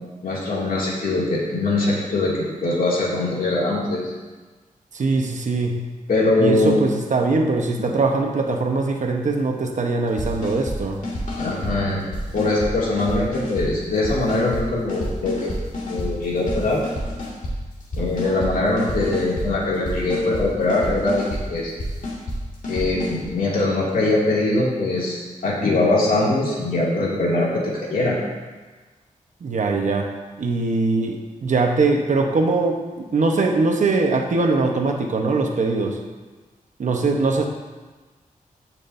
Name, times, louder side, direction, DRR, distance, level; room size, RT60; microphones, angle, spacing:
voice 1, 0.2-4.1 6.1-6.8 7.8-7.9 11.4-12.0 12.3-15.5 15.9-16.8 18.0-21.2 21.5-21.7 22.7-28.2, left 2 dB, 85° left, -5 dB, 2.5 m, -22 dB
voice 2, 4.9-5.9 6.4-11.0 29.4-30.1 30.4-36.0 36.8-37.5, right 3 dB, 60° right, 2 dB, 1.0 m, -21 dB
sound 1, 10.2-10.8 11.0-11.7 12.1-12.7 13.0-13.7 14.0-14.6 14.9-16.1 16.5-17.6 17.9-18.5 18.8-19.5 19.8-20.4 20.7-21.4 21.8-22.4 22.6-23.3, left 1 dB, 65° left, 2.3 m, -29 dB
16.0 x 6.0 x 2.7 m, 1.3 s
wide cardioid pair, 140°, 14 cm